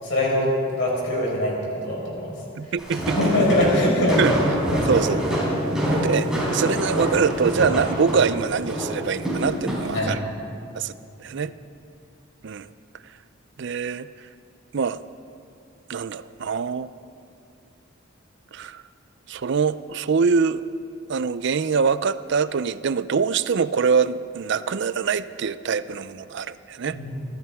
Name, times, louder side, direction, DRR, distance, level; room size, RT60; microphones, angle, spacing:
voice 1, 0.0-2.3 2.6-2.7 3.1-4.4 4.7-4.8 5.6-5.8 9.9-10.2 26.9-27.3, left 1 dB, 70° left, -3 dB, 4.7 m, -23 dB
voice 2, 2.5-3.3 4.2-4.3 4.9-5.3 5.9-6.3 6.5-10.2 10.7-10.9 11.2-11.5 12.4-12.7 13.6-14.1 14.7-15.0 15.9-16.9 18.5-18.8 19.3-20.7 21.1-27.0, right 5 dB, 60° right, 15 dB, 0.5 m, -24 dB
Walk footsteps, 2.8-10.0, equal, 5° right, 3.9 m, -26 dB
25.0 x 14.0 x 3.6 m, 2.5 s
head